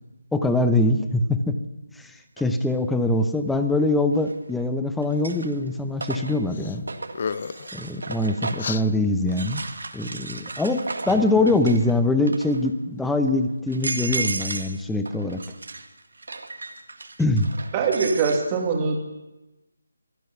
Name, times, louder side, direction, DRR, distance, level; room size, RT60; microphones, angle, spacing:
voice 1, 0.3-1.6 2.0-6.9 7.7-9.6 9.9-10.8 11.1-15.4 17.2-17.5, left 2 dB, 5° left, 8 dB, 0.8 m, -23 dB
sound 1, 2.4-2.5 4.2-4.6 5.0-8.8 9.3-11.9 12.2-12.7 13.2-13.3 13.7-14.8 15.0-18.4, right 3 dB, 75° right, 2.0 m, -34 dB
sound 2, 6.5-6.8 7.1-7.7 8.6-8.8, left 5 dB, 40° left, 0.6 m, -31 dB
voice 2, 17.7-19.0, right 5 dB, 20° right, 1 dB, 2.4 m, -23 dB
24.5 x 9.2 x 5.9 m, 1.0 s
figure-of-eight pair, 160°, 0 cm